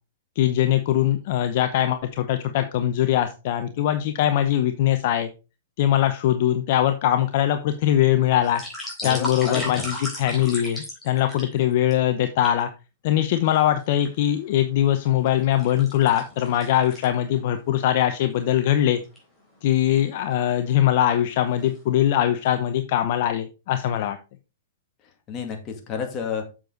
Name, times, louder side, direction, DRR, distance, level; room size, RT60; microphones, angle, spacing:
voice 1, 0.4-5.3 5.8-8.6 9.0-12.7 13.0-19.0 19.6-24.2, left 11 dB, 50° left, 8 dB, 0.8 m, -22 dB
sound 1, 8.3-11.9 12.4-12.6 13.3-14.1 14.6-17.5 17.8-17.9 18.4-18.5 18.9-19.2 20.0-20.5 21.0-21.3 21.6-22.2 22.5-22.6, left 1 dB, 5° left, 3.6 m, -36 dB
voice 2, 9.0-9.9 25.3-26.4, left 6 dB, 25° left, 3 dB, 2.2 m, -31 dB
7.5 x 6.8 x 3.9 m, 0.30 s
hypercardioid pair, 145°, 0 cm